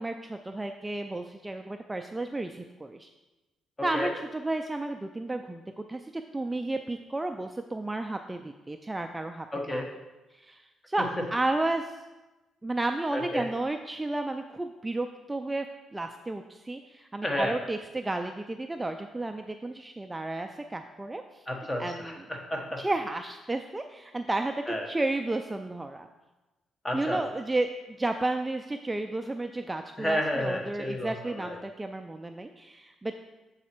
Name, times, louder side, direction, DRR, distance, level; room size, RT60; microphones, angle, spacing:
voice 1, 0.0-3.1 3.8-9.9 10.3-12.0 12.6-15.7 15.9-21.5 21.8-22.2 22.8-26.1 26.9-27.7 28.0-33.1, right 2 dB, 15° right, 6 dB, 0.3 m, -32 dB
voice 2, 9.5-9.9 13.1-13.5 17.2-17.6 21.5-22.8 24.7-24.9 26.8-27.2 30.0-31.6, left 1 dB, 20° left, 1 dB, 1.2 m, -31 dB
7.2 x 4.0 x 4.4 m, 1.1 s
cardioid pair, 90°, 0 cm